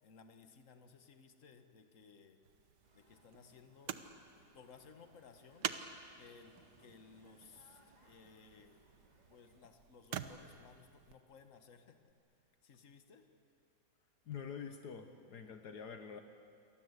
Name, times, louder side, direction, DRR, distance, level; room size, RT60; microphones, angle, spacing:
voice 1, 0.0-2.4 2.9-4.0 4.3-5.7 6.2-8.9 9.3-12.0 12.6-13.3, left 5 dB, 50° left, 7 dB, 1.8 m, -60 dB
sound 1, 2.4-11.1 12.1-12.2, right 8 dB, 80° right, 1.6 m, -48 dB
sound 2, 2.8-9.6, right 1 dB, 25° right, 3.1 m, -68 dB
voice 2, 14.3-16.2, left 6 dB, 70° left, 7 dB, 1.8 m, -46 dB
29.0 x 24.0 x 8.2 m, 2.3 s
omnidirectional pair, 1.8 m